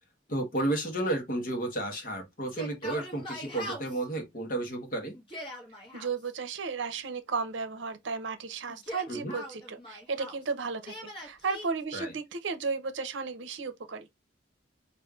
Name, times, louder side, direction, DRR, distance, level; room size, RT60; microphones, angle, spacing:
voice 1, 0.3-5.1 9.1-9.3 11.9-12.1, right 1 dB, 45° left, 1.1 m, -32 dB
Yell, 2.4-4.0 5.1-6.1 8.7-10.4 10.8-11.7, left 1 dB, 25° left, 1.3 m, -41 dB
voice 2, 5.9-10.9 11.2-14.1, right 4 dB, 75° right, 0.6 m, -34 dB
5.1 x 2.6 x 2.4 m
head